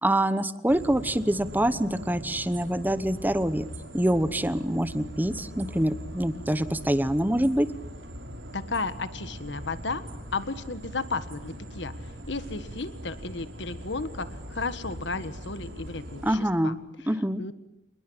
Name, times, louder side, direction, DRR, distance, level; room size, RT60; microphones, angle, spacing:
voice 1, 0.0-3.7 3.9-7.7 16.2-16.8 17.1-17.4, right 1 dB, 10° right, 14 dB, 1.0 m, -25 dB
sound 1, 0.7-16.3, equal, 80° right, 5.2 m, -41 dB
voice 2, 8.5-10.0 10.3-16.7 17.4-17.5, left 3 dB, 65° left, 12 dB, 1.7 m, -34 dB
28.0 x 20.5 x 8.8 m, 0.83 s
head